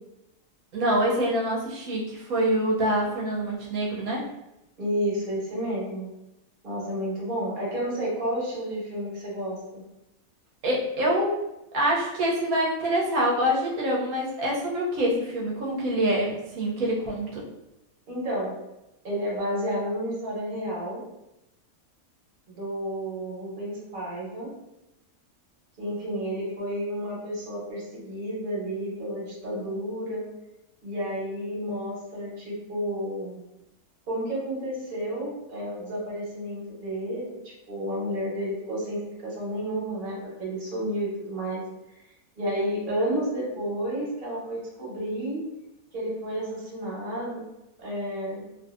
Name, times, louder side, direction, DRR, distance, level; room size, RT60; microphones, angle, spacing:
voice 1, 0.7-4.3 10.6-11.4 11.7-17.4, equal, 85° right, -3 dB, 1.1 m, -25 dB
voice 2, 4.8-6.1 6.6-9.8 18.1-18.5 19.0-21.0 22.5-24.5 25.8-30.2 30.8-33.4 34.1-37.4 37.7-41.6 41.9-42.0 42.4-45.4 45.9-47.4 47.8-48.4, equal, 40° right, -6 dB, 1.1 m, -31 dB
2.6 x 2.6 x 2.4 m, 0.91 s
omnidirectional pair, 1.5 m